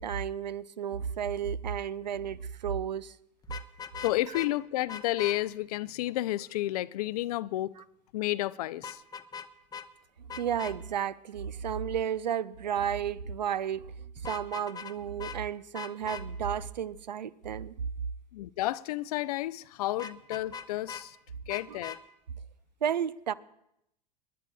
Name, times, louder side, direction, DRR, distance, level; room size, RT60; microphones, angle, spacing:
voice 1, 0.0-3.2 10.4-13.9 14.2-17.7 20.5-20.6 21.7-21.8 22.8-23.3, right 8 dB, 85° right, 0.5 m, -32 dB
Vehicle horn car horn honking, 3.4-4.5 4.9-5.4 8.8-9.5 9.7-9.9 10.3-10.7 14.2-14.9 15.2-15.4 15.7-16.2 20.0-21.0 21.5-22.0, left 7 dB, 20° left, 0.7 m, -40 dB
voice 2, 4.0-7.7 8.1-9.0 18.3-21.2 21.5-22.0, left 16 dB, 65° left, 0.5 m, -31 dB
27.5 x 11.0 x 2.3 m
hypercardioid pair, 90°, 21 cm